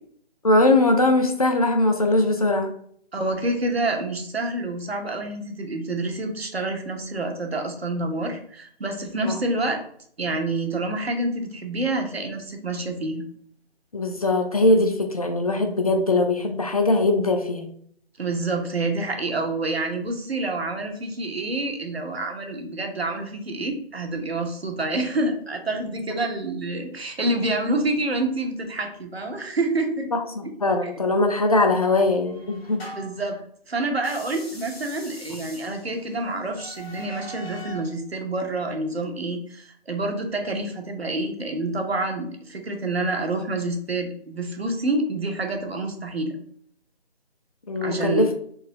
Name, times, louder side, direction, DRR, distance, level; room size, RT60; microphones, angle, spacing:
voice 1, 0.4-2.7 9.2-9.4 13.9-17.7 30.1-32.8 47.7-48.3, left 2 dB, 40° left, 4 dB, 0.4 m, -21 dB
voice 2, 3.1-9.8 10.2-13.2 18.2-30.1 30.8-30.9 32.9-33.4 33.7-46.4 47.8-48.3, right 2 dB, 80° right, 3 dB, 1.0 m, -27 dB
sound 1, 31.4-33.3 34.0-37.9, right 1 dB, 80° left, 1.3 m, -42 dB
3.9 x 2.7 x 2.9 m, 0.62 s
figure-of-eight pair, 150°, 30 cm